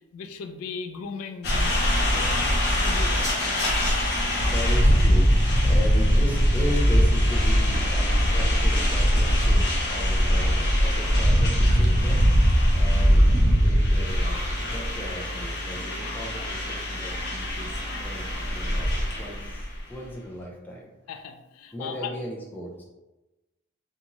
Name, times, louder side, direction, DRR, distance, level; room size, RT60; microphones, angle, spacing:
voice 1, 0.0-3.3 21.1-22.1, left 5 dB, 90° left, 10 dB, 0.3 m, -38 dB
sound 1, 1.4-19.8, equal, 50° left, 0.7 m, -22 dB
voice 2, 4.4-12.5 12.7-13.3 13.6-20.9 21.7-22.8, equal, 10° left, -3 dB, 0.4 m, -36 dB
2.6 x 2.4 x 2.9 m, 1.1 s
head